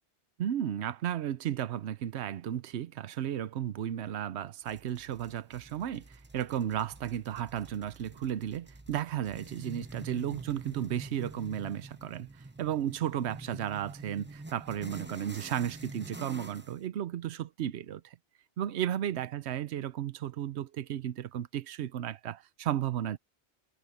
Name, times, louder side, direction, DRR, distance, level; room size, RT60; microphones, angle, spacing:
voice 1, 0.4-18.2 18.6-23.2, right 10 dB, 85° right, 0.9 m, -34 dB
sound 1, 4.6-16.8, right 2 dB, 10° right, 0.6 m, -47 dB
omnidirectional pair, 1.1 m